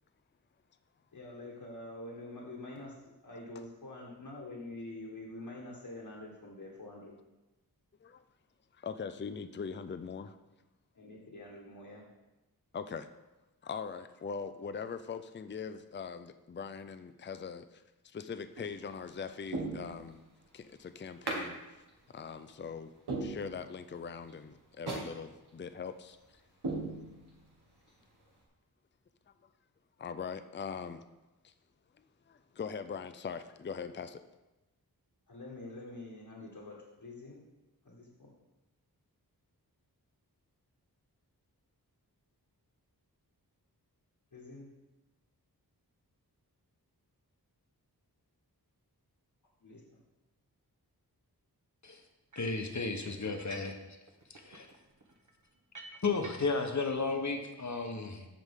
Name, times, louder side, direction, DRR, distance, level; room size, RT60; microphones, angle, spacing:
voice 1, 1.1-7.2 10.9-12.0 35.3-37.4 37.8-38.3 44.3-44.7 49.6-49.8, left 2 dB, 65° left, -4 dB, 1.6 m, -46 dB
voice 2, 8.8-10.4 12.7-13.1 13.6-20.2 20.5-21.6 22.1-22.9 23.2-26.2 30.0-31.0 31.4-31.5 32.3-34.2, left 6 dB, 30° left, 10 dB, 0.4 m, -41 dB
sound 1, 18.5-18.9 19.5-20.4 21.3-21.5 21.9-22.0 22.5-22.6 23.1-24.0 24.3-24.4 24.9-25.1 25.5-25.6 26.1-26.2 26.6-27.5 27.9-28.0, right 3 dB, 85° right, 2.0 m, -38 dB
voice 3, 52.3-53.7 54.3-54.7 56.0-58.3, left 4 dB, 45° left, 5 dB, 1.1 m, -33 dB
sound 2, 52.3-52.6 53.3-53.8 54.1-56.7, right 2 dB, 50° right, 1.2 m, -52 dB
14.5 x 5.0 x 3.7 m, 1.0 s
wide cardioid pair, 75°, 38 cm